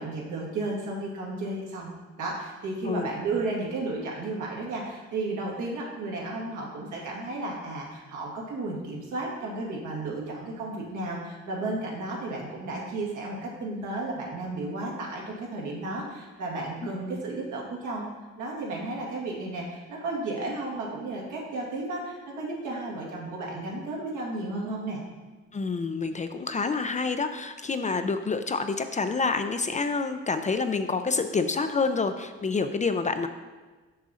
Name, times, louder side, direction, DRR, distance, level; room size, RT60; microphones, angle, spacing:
voice 1, 0.0-1.9 2.2-18.0 18.4-25.0, right 2 dB, 80° right, -2 dB, 1.9 m, -33 dB
voice 2, 25.5-33.3, left 4 dB, 25° left, 8 dB, 0.4 m, -28 dB
6.2 x 6.1 x 4.2 m, 1.3 s
cardioid pair, 90°, 30 cm